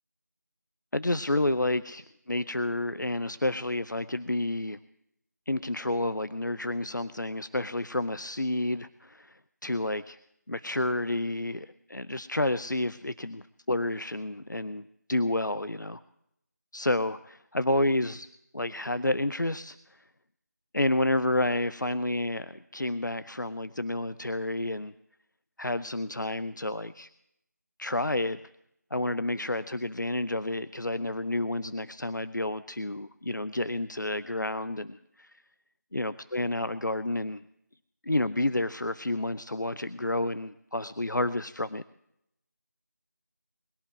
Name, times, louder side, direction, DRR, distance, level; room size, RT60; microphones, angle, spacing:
voice 1, 0.9-4.8 5.5-10.2 10.5-16.0 16.7-18.3 18.5-20.0 20.7-24.9 25.6-27.1 27.8-28.4 28.9-35.4 35.9-37.4 38.0-41.8, left 1 dB, 90° left, 14 dB, 0.6 m, -30 dB
20.5 x 12.5 x 4.9 m, 0.79 s
figure-of-eight pair, 170°, 10 cm